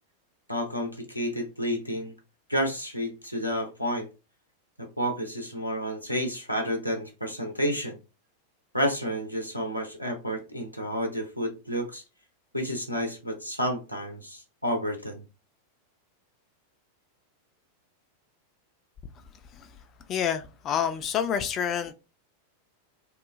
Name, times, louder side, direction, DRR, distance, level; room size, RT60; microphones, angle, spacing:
voice 1, 0.5-2.1 2.5-4.1 4.8-8.0 8.7-12.0 12.5-15.2, equal, 90° left, 0.6 m, -30 dB
voice 2, 20.1-21.9, left 8 dB, 30° left, 0.3 m, -28 dB
2.8 x 2.1 x 2.4 m
figure-of-eight pair, 90°, 0 cm